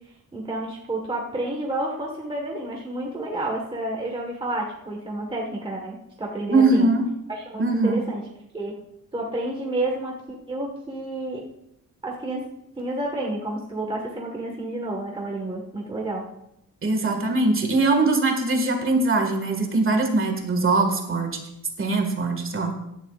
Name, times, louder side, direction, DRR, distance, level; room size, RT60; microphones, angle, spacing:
voice 1, 0.3-6.9 7.3-8.2 8.5-8.7 9.1-11.5 12.0-12.5 12.7-16.3, right 1 dB, 15° right, -1 dB, 1.5 m, -30 dB
voice 2, 6.5-7.0 7.6-8.0 16.8-21.4 21.8-22.7, right 2 dB, 40° right, 4 dB, 1.9 m, -21 dB
16.0 x 11.0 x 2.4 m, 0.81 s
wide cardioid pair, 155°, 33 cm